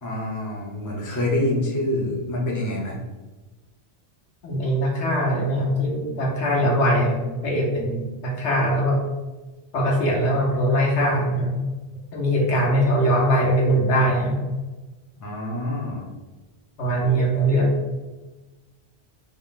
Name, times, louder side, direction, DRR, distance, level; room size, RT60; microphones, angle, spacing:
voice 1, 0.0-3.0 15.2-16.1, left 1 dB, 20° left, -3 dB, 0.7 m, -26 dB
voice 2, 4.4-9.0 9.7-11.5 12.1-14.4 16.8-17.7, equal, 85° left, -1 dB, 1.2 m, -21 dB
4.4 x 2.1 x 3.7 m, 1.2 s
omnidirectional pair, 1.1 m